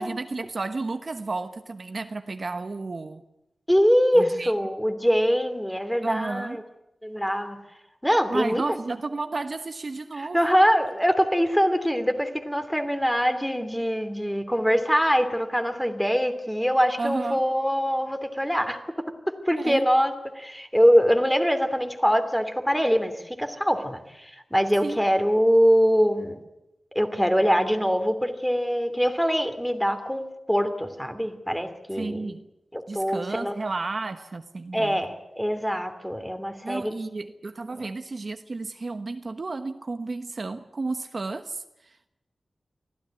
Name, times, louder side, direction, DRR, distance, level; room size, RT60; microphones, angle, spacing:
voice 1, 0.0-3.2 4.1-4.5 6.0-6.6 8.3-10.5 17.0-17.4 19.6-19.9 24.8-25.0 31.9-32.5 32.9-35.0 36.6-42.1, right 3 dB, 50° right, 8 dB, 1.2 m, -32 dB
voice 2, 3.7-6.6 7.0-7.6 8.0-8.6 10.2-18.8 19.3-26.4 26.9-32.3 32.7-33.5 34.7-36.9 37.8-37.9, equal, ahead, 8 dB, 2.8 m, -23 dB
25.0 x 16.0 x 9.7 m, 0.92 s
wide cardioid pair, 90°, 0 cm